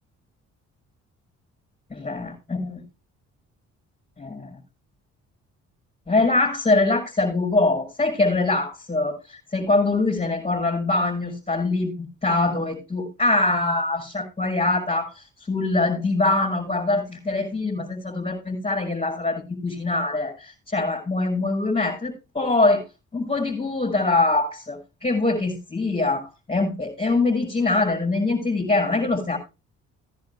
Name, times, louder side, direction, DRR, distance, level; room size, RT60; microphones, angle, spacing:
voice 1, 1.9-2.8 4.2-4.5 6.1-22.8 23.1-29.4, left 2 dB, 20° left, -4 dB, 6.1 m, -23 dB
18.5 x 10.5 x 2.2 m, 0.27 s
cardioid pair, 90°, 30 cm